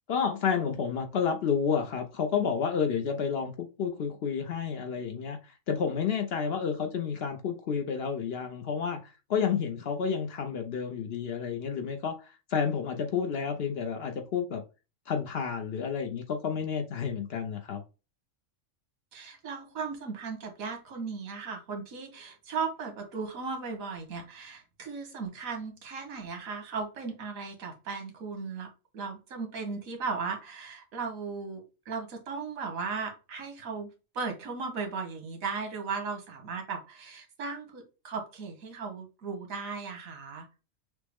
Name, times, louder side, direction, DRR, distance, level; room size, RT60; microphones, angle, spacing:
voice 1, 0.1-5.4 5.7-9.0 9.3-14.6 15.1-17.8, left 6 dB, 60° left, 0.7 m, -30 dB
voice 2, 19.1-40.5, right 4 dB, 85° right, 1.5 m, -37 dB
6.1 x 2.0 x 3.4 m
omnidirectional pair, 1.4 m